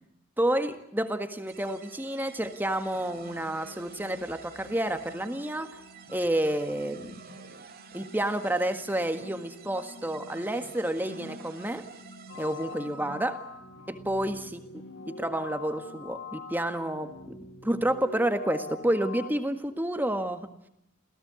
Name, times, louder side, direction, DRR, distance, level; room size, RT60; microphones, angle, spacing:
voice 1, 0.4-5.7 6.1-7.2 7.9-11.8 12.3-13.4 13.9-14.6 15.1-20.5, right 1 dB, 10° right, 7 dB, 1.6 m, -30 dB
sound 1, 1.5-13.1, right 6 dB, 45° right, 2.1 m, -50 dB
sound 2, 2.5-17.5, equal, 80° left, 6.4 m, -51 dB
sound 3, 12.3-19.3, left 4 dB, 55° left, 1.8 m, -43 dB
28.0 x 17.0 x 8.3 m, 0.82 s
head